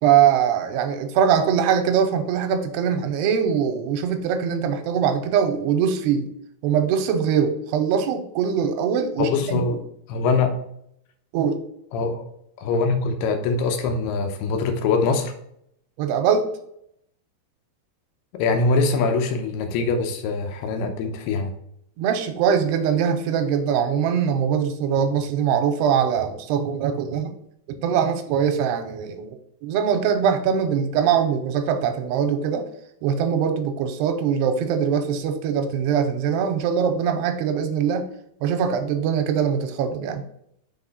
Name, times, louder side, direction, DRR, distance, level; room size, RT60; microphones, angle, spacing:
voice 1, 0.0-6.3 6.6-9.6 11.3-11.6 16.0-16.5 22.0-27.3 27.8-29.4 29.6-32.7 33.0-38.1 38.4-40.2, right 7 dB, 85° right, 6 dB, 2.7 m, -22 dB
voice 2, 9.2-9.8 10.1-10.5 11.9-12.2 12.6-15.3 18.3-21.5, left 4 dB, 80° left, 5 dB, 2.6 m, -23 dB
6.0 x 4.3 x 4.0 m, 0.74 s
omnidirectional pair, 4.8 m